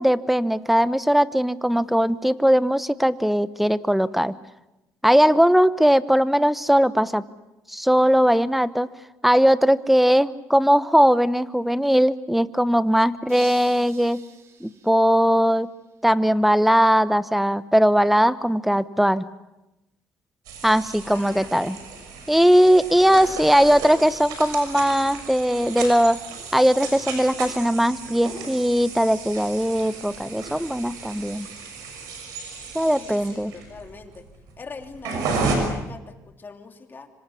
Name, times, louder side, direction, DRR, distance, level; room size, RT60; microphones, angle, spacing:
voice 1, 0.0-4.3 5.0-7.2 7.7-8.9 9.2-14.2 14.6-15.7 16.0-19.2 20.6-21.8 22.3-26.2 26.5-31.5 32.7-33.5, equal, ahead, 15 dB, 1.0 m, -19 dB
sound 1, 13.3-16.1, right 6 dB, 50° right, 3.0 m, -48 dB
sound 2, 20.4-35.6, right 4 dB, 85° right, 6.3 m, -34 dB
voice 2, 21.0-21.8 23.0-24.1 32.9-34.2 34.6-37.1, left 4 dB, 35° left, 5 dB, 3.2 m, -42 dB
26.0 x 25.5 x 7.2 m, 0.95 s
cardioid pair, 95°, 6 cm